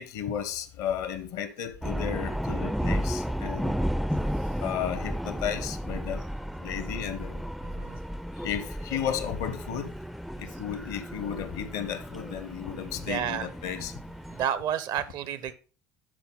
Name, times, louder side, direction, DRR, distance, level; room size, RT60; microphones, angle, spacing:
voice 1, 0.0-3.8 4.6-6.2 6.6-7.4 8.4-9.9 10.4-13.9, left 9 dB, 65° left, 1.0 m, -33 dB
sound 1, 1.8-14.5, equal, ahead, 0.4 m, -33 dB
voice 2, 7.6-8.0 10.5-10.6 13.0-13.5 14.3-15.5, right 9 dB, 50° right, 0.7 m, -31 dB
11.5 x 4.1 x 3.9 m
figure-of-eight pair, 65°, 9 cm